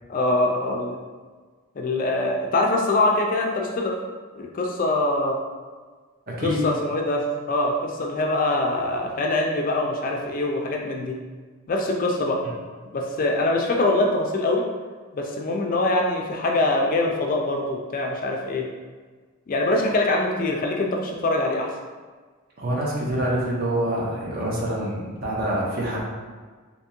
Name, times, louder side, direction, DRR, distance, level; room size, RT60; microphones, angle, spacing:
voice 1, 0.1-1.0 1.8-3.9 4.4-5.4 6.4-11.1 11.7-12.4 12.9-14.6 15.1-18.6 19.5-21.7, left 2 dB, 40° left, 1 dB, 0.3 m, -23 dB
voice 2, 6.3-6.6 12.4-12.5 22.6-26.0, right 1 dB, 45° right, -4 dB, 0.8 m, -26 dB
3.4 x 2.8 x 2.9 m, 1.5 s
head